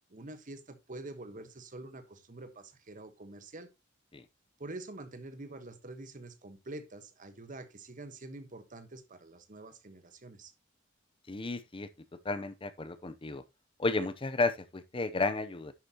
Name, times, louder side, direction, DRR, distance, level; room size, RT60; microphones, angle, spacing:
voice 1, 0.1-3.7 4.6-10.5, right 2 dB, 45° right, 1.3 m, -46 dB
voice 2, 11.3-11.9 12.2-13.4 13.8-15.7, left 3 dB, 25° left, 0.6 m, -32 dB
10.5 x 8.0 x 2.9 m
head